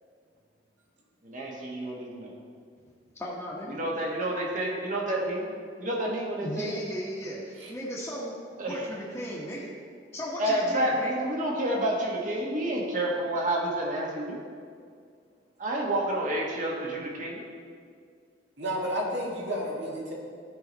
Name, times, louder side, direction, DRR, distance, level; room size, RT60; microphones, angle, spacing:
voice 1, 1.2-2.3 3.7-6.8 8.6-8.9 10.4-14.4 15.6-17.4, right 1 dB, 45° right, -2 dB, 1.5 m, -29 dB
voice 2, 3.1-3.8 6.4-8.4 8.7-9.7 10.1-11.1, equal, 15° left, -9 dB, 1.2 m, -36 dB
voice 3, 18.6-20.1, equal, 75° right, -3 dB, 2.1 m, -31 dB
13.5 x 4.9 x 4.0 m, 2.2 s
head